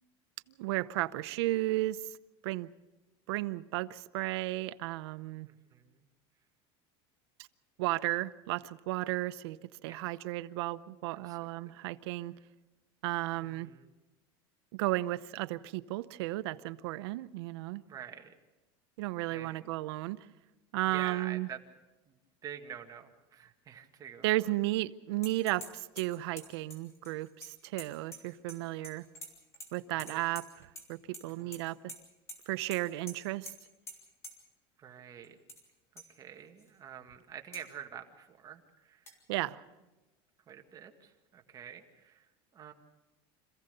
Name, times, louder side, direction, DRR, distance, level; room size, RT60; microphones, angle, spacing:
voice 1, 0.6-2.0 2.4-2.7 3.3-5.5 7.8-12.3 13.0-13.7 14.7-17.8 19.0-20.3 20.7-21.5 24.2-29.0 29.7-31.9 32.5-33.5 39.3-39.6, right 18 dB, 90° right, 0.8 m, -34 dB
voice 2, 5.4-6.1 9.9-10.2 11.1-11.5 13.4-13.9 17.9-18.3 19.3-19.7 20.9-21.6 22.1-22.2 22.4-24.3 30.0-30.3 31.2-31.6 34.8-35.4 35.9-39.2 40.5-42.7, right 9 dB, 30° right, 1.7 m, -47 dB
sound 1, 25.2-25.7 26.0-28.6 28.8-29.7 30.0-30.9 31.1-31.6 31.9-32.0 32.3-32.4 32.7-32.8 33.1-33.2 33.5-33.6 33.9-34.0 34.2-34.3 35.2-35.6 36.0-36.1 36.6-36.7 37.5-37.6 39.1-39.2, equal, 20° left, 3.5 m, -46 dB
26.5 x 15.5 x 6.8 m
cardioid pair, 155°, 13 cm